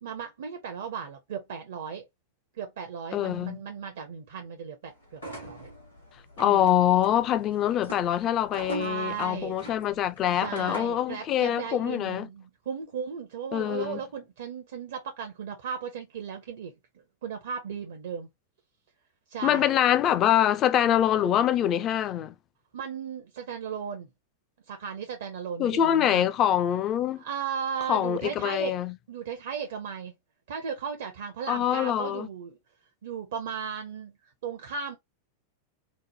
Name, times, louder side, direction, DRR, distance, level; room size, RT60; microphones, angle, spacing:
voice 1, 0.0-2.1 2.5-5.7 6.4-6.7 8.8-9.6 10.4-16.7 17.2-18.3 19.3-19.7 22.7-24.1 24.7-26.3 27.2-28.7 29.1-30.1 30.5-32.6 33.0-34.1 34.4-35.0, right 7 dB, 60° right, 0.6 m, -36 dB
voice 2, 3.1-3.6 6.4-12.3 13.5-14.0 19.4-22.3 25.6-27.2 27.9-28.9 31.5-32.3, left 11 dB, 30° left, 0.4 m, -24 dB
sound 1, 5.1-11.1, right 1 dB, 80° left, 1.8 m, -41 dB
4.0 x 2.1 x 3.0 m
figure-of-eight pair, 90°, 0 cm